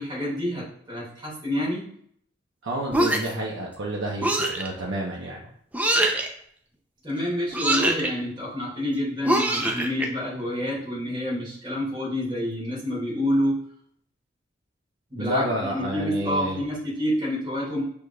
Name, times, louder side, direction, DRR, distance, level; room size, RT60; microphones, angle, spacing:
voice 1, 0.0-1.8 7.0-13.6 15.1-17.8, left 1 dB, 25° right, -7 dB, 2.0 m, -28 dB
voice 2, 2.6-5.4 15.2-16.6, right 1 dB, 85° right, -4 dB, 0.8 m, -29 dB
sound 1, 2.9-3.4 4.2-4.7 5.7-6.3 7.5-8.1 9.2-10.1, right 1 dB, 10° right, 0.4 m, -23 dB
6.3 x 3.5 x 2.3 m, 0.64 s
head